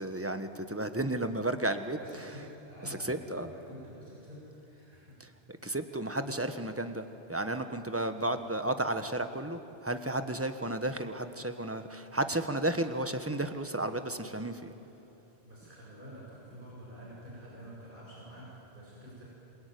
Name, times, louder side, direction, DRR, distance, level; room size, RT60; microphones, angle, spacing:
voice 1, 0.0-2.0 2.8-3.5 5.6-14.7, right 1 dB, 15° right, 8 dB, 1.3 m, -33 dB
voice 2, 1.9-5.2 5.9-6.1 8.0-8.5 15.4-19.2, equal, 50° right, -6 dB, 7.5 m, -49 dB
27.5 x 22.5 x 9.5 m, 3.0 s
omnidirectional pair, 1.1 m